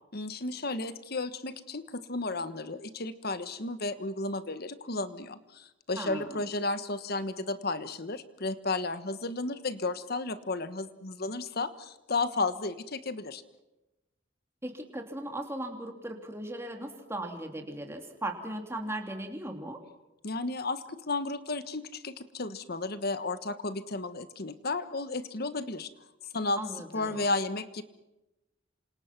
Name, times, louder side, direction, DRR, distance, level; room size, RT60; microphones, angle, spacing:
voice 1, 0.1-13.4 20.2-25.9 26.3-26.6 26.9-27.8, left 3 dB, 55° left, 12 dB, 1.4 m, -33 dB
voice 2, 6.0-6.4 14.6-19.8 26.6-27.3, right 1 dB, 15° right, 3 dB, 3.0 m, -38 dB
28.0 x 26.5 x 6.0 m, 0.99 s
head